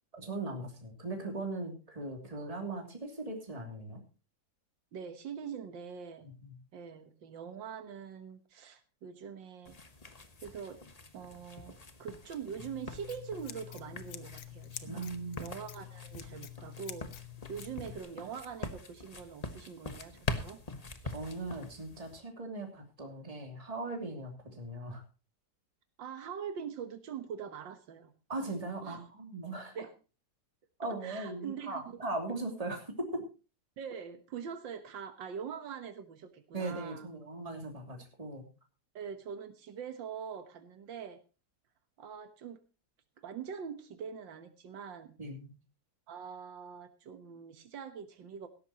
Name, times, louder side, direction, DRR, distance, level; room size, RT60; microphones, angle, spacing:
voice 1, 0.2-4.0 6.4-6.5 14.8-15.5 21.0-25.0 28.3-29.8 30.8-33.2 36.5-38.5 45.2-45.5, right 2 dB, 20° right, 2 dB, 2.9 m, -39 dB
voice 2, 4.9-6.3 6.7-9.8 10.4-10.8 11.1-15.1 15.4-20.6 26.0-28.1 28.8-29.1 29.8-29.9 30.8-32.0 33.8-37.1 38.9-41.2 42.0-42.6 43.2-45.2 46.1-48.5, right 7 dB, 85° right, 9 dB, 1.9 m, -43 dB
sound 1, 9.6-22.2, left 3 dB, 25° left, 1.1 m, -44 dB
Scissors, 12.6-18.0, left 12 dB, 85° left, 1.7 m, -47 dB
17.0 x 13.5 x 2.9 m, 0.32 s
omnidirectional pair, 2.0 m